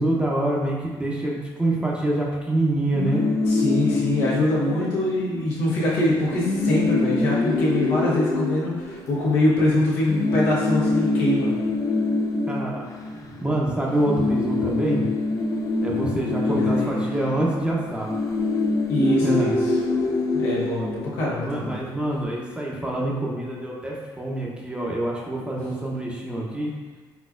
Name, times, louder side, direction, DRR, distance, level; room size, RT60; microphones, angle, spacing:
voice 1, 0.0-3.2 12.5-12.9 13.1-15.0 15.8-18.1 19.2-19.5 21.4-26.7, right 1 dB, 10° right, -3 dB, 0.8 m, -26 dB
sound 1, 2.8-5.4 5.7-5.9 6.1-9.5 10.1-13.6 13.9-21.5, left 3 dB, 35° left, 0.6 m, -25 dB
voice 2, 3.5-11.5 16.4-17.0 18.9-19.8 20.3-21.8, left 1 dB, 85° left, -7 dB, 1.3 m, -24 dB
4.1 x 3.6 x 2.5 m, 1.4 s
supercardioid pair, 75°, 10 cm